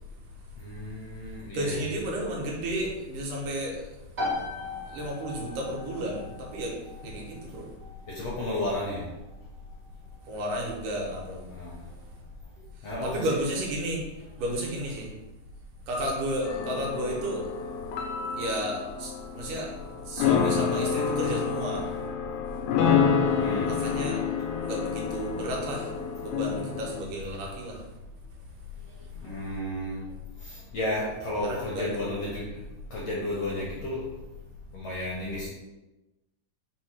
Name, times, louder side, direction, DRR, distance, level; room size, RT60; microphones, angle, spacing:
voice 1, 0.6-1.9 8.2-9.0 11.5-11.7 12.8-13.3 23.4-23.7 24.0-24.1 29.2-30.0 30.7-32.4 32.9-34.0 34.7-35.5, left 1 dB, 75° left, -5 dB, 1.4 m, -32 dB
voice 2, 1.5-3.8 4.9-6.8 7.0-7.7 10.3-11.4 13.0-14.0 14.4-15.1 15.9-17.5 18.4-19.7 20.1-21.9 23.6-24.2 24.6-25.9 26.2-27.8 31.4-32.1, right 1 dB, 80° right, -1 dB, 2.4 m, -32 dB
sound 1, 4.1-18.6, left 2 dB, 65° right, 0.7 m, -42 dB
sound 2, 16.5-27.0, left 6 dB, 90° left, 2.2 m, -28 dB
5.3 x 2.1 x 4.4 m, 1.1 s
omnidirectional pair, 3.6 m